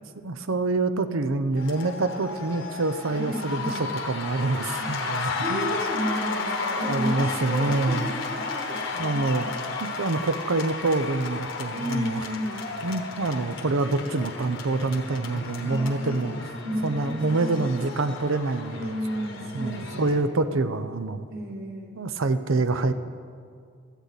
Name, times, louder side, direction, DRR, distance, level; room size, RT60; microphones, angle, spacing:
voice 1, 0.2-5.7 6.9-8.1 9.0-9.5 9.8-12.3 12.8-16.5 16.8-18.9 19.5-21.3 22.0-22.9, right 3 dB, 85° right, 11 dB, 0.7 m, -26 dB
sound 1, 1.6-20.2, left 4 dB, 65° left, 1.1 m, -33 dB
voice 2, 3.1-3.9 4.8-9.5 11.7-12.6 15.7-16.4 16.6-17.8 18.7-20.5 21.3-22.0, equal, 50° right, -3 dB, 2.8 m, -33 dB
16.5 x 13.5 x 4.1 m, 2.2 s
head